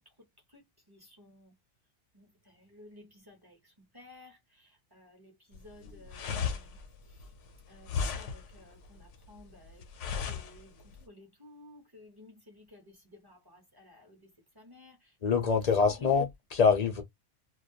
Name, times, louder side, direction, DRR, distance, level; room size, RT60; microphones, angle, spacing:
voice 1, 0.9-1.5 2.1-6.8 7.7-9.8 10.2-14.3 14.6-15.0 15.8-15.9, left 1 dB, 25° right, 0.6 m, -55 dB
sound 1, 5.5-11.0, left 6 dB, 75° left, 0.9 m, -36 dB
voice 2, 15.2-17.0, left 5 dB, 55° left, 0.4 m, -25 dB
2.2 x 2.2 x 2.6 m
omnidirectional pair, 1.3 m